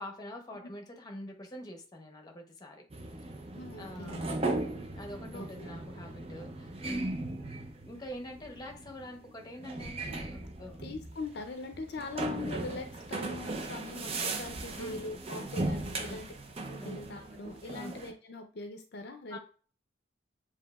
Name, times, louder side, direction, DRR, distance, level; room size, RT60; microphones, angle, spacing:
voice 1, 0.0-2.8 3.8-4.4 4.9-7.0 7.8-10.8 14.8-15.0 15.4-15.5 15.9-16.2 16.8-17.0 17.7-17.9 19.3-19.4, left 1 dB, 20° left, 2 dB, 0.8 m, -45 dB
sound 1, 2.9-18.1, right 2 dB, 30° right, 0.5 m, -38 dB
voice 2, 3.5-4.2 5.2-5.7 10.8-16.3 16.7-19.4, left 3 dB, 55° left, 5 dB, 0.5 m, -42 dB
7.1 x 2.8 x 2.3 m, 0.39 s
head